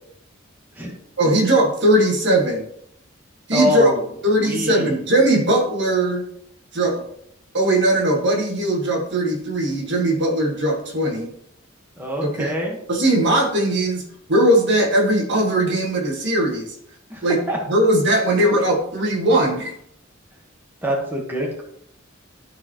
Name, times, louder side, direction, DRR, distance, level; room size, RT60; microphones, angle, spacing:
voice 1, 1.2-2.7 3.5-3.9 4.2-6.2 6.7-7.0 7.5-11.3 12.2-12.5 12.9-14.0 14.3-16.7 17.2-17.4 17.7-19.7, right 1 dB, 60° right, 1 dB, 1.7 m, -19 dB
voice 2, 3.5-4.0 4.3-4.9 12.0-12.8 17.1-17.6 20.8-21.6, equal, 10° right, -1 dB, 1.3 m, -24 dB
13.0 x 4.6 x 3.0 m, 0.70 s
head